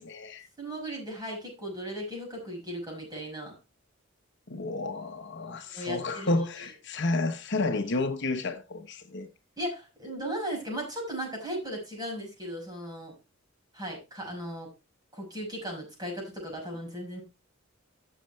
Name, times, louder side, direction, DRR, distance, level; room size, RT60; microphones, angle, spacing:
voice 1, 0.0-0.5 4.5-9.3, left 2 dB, 60° left, 1.1 m, -31 dB
voice 2, 0.6-3.5 5.7-6.4 9.6-13.1 13.7-14.7 15.1-17.2, equal, 20° right, 6.1 m, -36 dB
13.5 x 6.8 x 3.3 m
head